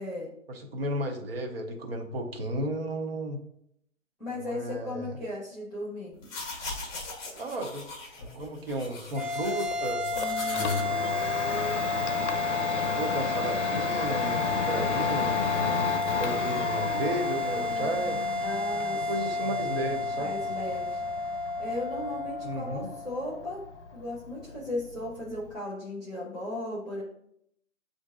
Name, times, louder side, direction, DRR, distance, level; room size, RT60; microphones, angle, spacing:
voice 1, 0.5-3.4 4.4-5.2 7.4-7.9 8.3-10.0 10.4-11.0 12.7-18.2 19.1-20.3 22.4-22.9, right 1 dB, 50° right, 4 dB, 0.8 m, -34 dB
voice 2, 4.2-6.2 10.2-10.9 18.4-19.4 20.1-21.0 21.6-23.6 23.9-27.0, left 1 dB, ahead, -12 dB, 0.3 m, -36 dB
sound 1, 6.1-10.8, left 3 dB, 15° left, 0.8 m, -40 dB
sound 2, 9.1-23.7, left 2 dB, 75° right, 1.3 m, -31 dB
Domestic sounds home sounds, 9.7-25.5, left 6 dB, 65° left, 0.6 m, -33 dB
7.6 x 2.6 x 2.5 m, 0.73 s
figure-of-eight pair, 140°, 40 cm